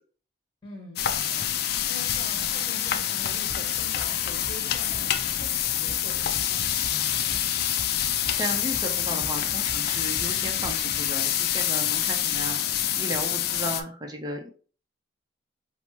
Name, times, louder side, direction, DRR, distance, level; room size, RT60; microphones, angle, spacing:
voice 1, 0.6-7.4, left 1 dB, 25° left, 0 dB, 1.3 m, -44 dB
sound 1, 1.0-13.8, left 10 dB, 55° left, 0.3 m, -27 dB
sound 2, 3.5-11.1, equal, 5° right, 1.3 m, -44 dB
voice 2, 8.0-14.5, right 1 dB, 20° right, 3 dB, 0.6 m, -35 dB
4.8 x 2.1 x 3.0 m, 0.40 s
head